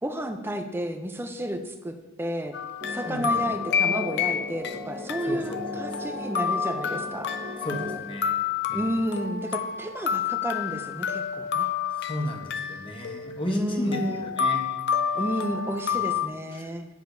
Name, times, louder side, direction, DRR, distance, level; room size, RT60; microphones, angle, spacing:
voice 1, 0.0-2.6 2.9-7.6 8.7-11.7 13.5-14.3 15.1-16.9, right 1 dB, 10° right, 6 dB, 0.5 m, -31 dB
sound 1, 2.5-4.8 5.1-16.3, left 7 dB, 50° left, 0.4 m, -29 dB
sound 2, 2.8-8.0, left 2 dB, 40° right, 1.3 m, -37 dB
voice 2, 3.1-3.6 5.2-5.6 5.9-6.2 7.6-8.4 8.7-8.9 11.9-14.8 15.1-15.2 16.5-16.7, left 1 dB, 25° left, 2 dB, 0.9 m, -34 dB
9.6 x 6.6 x 2.7 m, 1.1 s
head